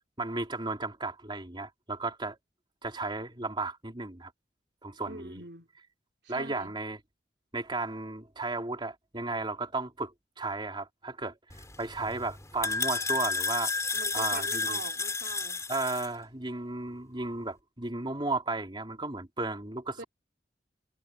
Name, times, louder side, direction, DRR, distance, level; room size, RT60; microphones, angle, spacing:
voice 1, 0.2-2.4 2.8-4.3 4.8-5.4 6.3-7.0 7.5-14.8 15.7-20.0, right 3 dB, 25° right, 3.3 m, -34 dB
voice 2, 5.1-5.7 6.2-6.8 13.9-15.7 20.0-20.1, right 3 dB, 70° right, 4.2 m, -42 dB
sound 1, 11.5-16.1, left 4 dB, 20° left, 3.8 m, -32 dB
head